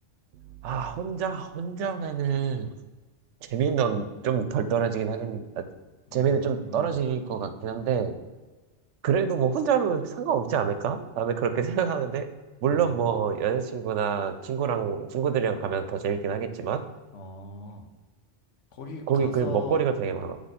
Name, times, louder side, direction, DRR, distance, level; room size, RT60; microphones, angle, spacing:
voice 1, 0.3-2.7 3.4-5.7 6.1-8.2 9.0-12.3 12.6-16.8 19.1-20.4, right 7 dB, 80° right, 9 dB, 0.9 m, -27 dB
voice 2, 6.1-7.0 12.7-13.1 17.1-17.9 18.7-19.8, left 3 dB, 80° left, 4 dB, 1.1 m, -39 dB
7.8 x 3.3 x 4.1 m, 1.2 s
omnidirectional pair, 1.2 m